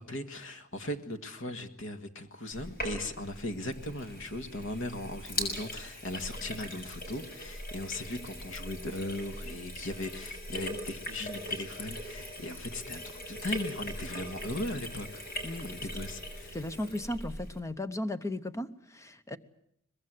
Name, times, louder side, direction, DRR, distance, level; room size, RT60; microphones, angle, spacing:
voice 1, 0.0-15.2 15.6-16.6, left 1 dB, 65° left, 8 dB, 1.9 m, -38 dB
Sink (filling or washing), 2.5-17.6, left 1 dB, 45° left, 6.5 m, -40 dB
voice 2, 16.5-19.4, left 1 dB, 15° left, 12 dB, 0.9 m, -36 dB
23.0 x 21.0 x 7.8 m, 0.73 s
head